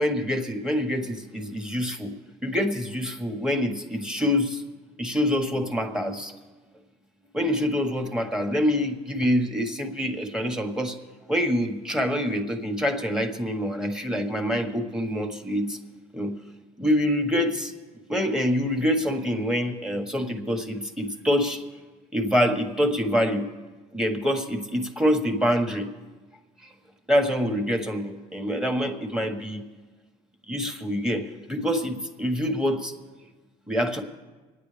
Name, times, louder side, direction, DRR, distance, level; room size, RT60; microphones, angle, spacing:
voice 1, 0.0-2.1 2.4-4.6 5.0-6.3 7.3-11.0 11.3-15.8 16.1-16.3 16.8-17.7 18.1-21.6 22.1-23.4 23.9-25.9 27.1-29.6 30.5-32.9 33.7-34.0, equal, 5° right, 4 dB, 1.6 m, -26 dB
27.0 x 9.7 x 3.4 m, 1.3 s
cardioid pair, 110°, 17 cm